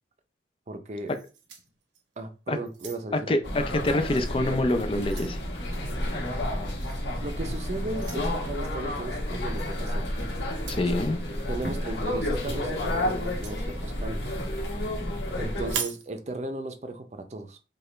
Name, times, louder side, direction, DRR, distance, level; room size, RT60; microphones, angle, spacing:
voice 1, 0.7-1.2 2.2-3.4 7.2-10.1 11.5-14.3 15.4-17.6, right 2 dB, 40° right, 0.5 m, -36 dB
sound 1, 1.1-2.2 2.7-3.3 4.1-4.3 4.7-5.4 6.8-7.0 7.9-8.3 9.6-9.8 10.5-10.9 13.2-13.6 15.6-16.1, right 7 dB, 85° right, 0.7 m, -38 dB
voice 2, 3.3-5.4 10.7-11.2, left 1 dB, 30° left, 0.4 m, -26 dB
sound 2, 3.4-15.7, left 1 dB, 65° left, 1.4 m, -31 dB
4.8 x 2.4 x 3.1 m
head